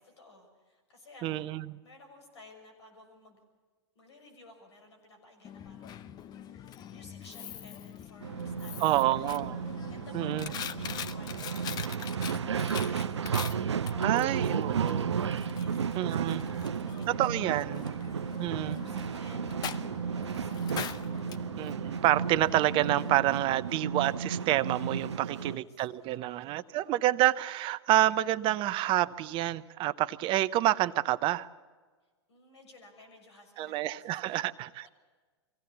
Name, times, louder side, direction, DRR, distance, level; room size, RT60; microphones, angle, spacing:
voice 1, 0.0-1.5 1.8-3.4 3.9-14.9 15.5-18.1 18.5-21.1 25.3-25.7 26.1-26.8 32.3-34.5 34.8-34.9, left 2 dB, 75° left, 4 dB, 6.6 m, -56 dB
voice 2, 1.2-1.8 8.8-9.6 10.1-10.5 14.0-15.2 15.9-16.4 17.2-17.9 18.4-18.8 21.6-31.5 33.6-34.9, right 14 dB, 35° right, 15 dB, 0.7 m, -28 dB
Coin (dropping), 5.4-23.2, left 9 dB, 30° left, 0.8 m, -43 dB
sound 1, 8.2-25.6, right 7 dB, 85° right, 0.6 m, -33 dB
23.5 x 16.5 x 8.3 m, 1.4 s
hypercardioid pair, 105°, 14 cm